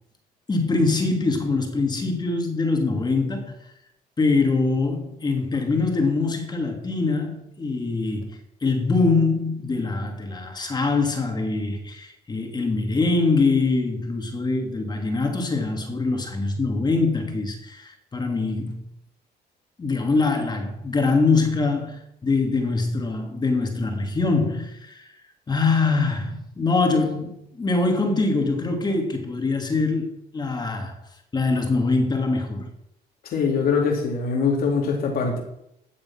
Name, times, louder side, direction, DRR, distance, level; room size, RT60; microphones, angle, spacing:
voice 1, 0.5-3.6 4.2-18.8 19.8-25.1 25.5-31.0 31.3-32.7, left 3 dB, 25° left, 2.8 m, -23 dB
voice 2, 33.3-35.4, left 5 dB, 65° left, 3.4 m, -22 dB
14.0 x 7.5 x 6.0 m
cardioid pair, 110°, 17 cm